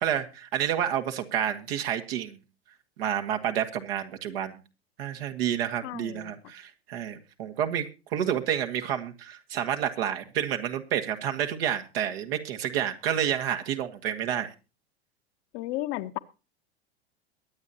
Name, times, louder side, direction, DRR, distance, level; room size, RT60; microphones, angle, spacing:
voice 1, 0.0-2.4 3.0-4.6 5.0-14.5, right 9 dB, 65° right, 7 dB, 1.8 m, -29 dB
voice 2, 5.8-6.3 15.5-16.2, left 16 dB, 45° left, 10 dB, 1.0 m, -33 dB
22.5 x 8.7 x 2.8 m, 0.31 s
hypercardioid pair, 90°, 32 cm